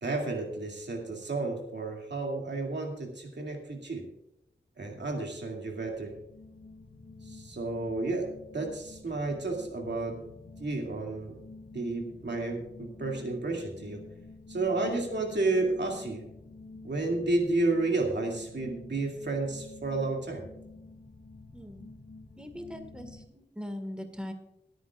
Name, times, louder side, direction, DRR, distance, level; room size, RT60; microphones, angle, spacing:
voice 1, 0.0-4.1 4.8-6.2 7.2-10.2 10.6-11.4 11.7-14.0 14.5-16.2 16.8-20.5, right 2 dB, 70° right, 1 dB, 2.4 m, -31 dB
sound 1, 5.4-23.3, left 3 dB, 85° left, 1.9 m, -49 dB
voice 2, 14.8-15.1 21.5-21.9 22.4-24.3, left 1 dB, 5° right, 6 dB, 1.8 m, -41 dB
25.0 x 9.4 x 2.4 m, 0.85 s
wide cardioid pair, 65°, 19 cm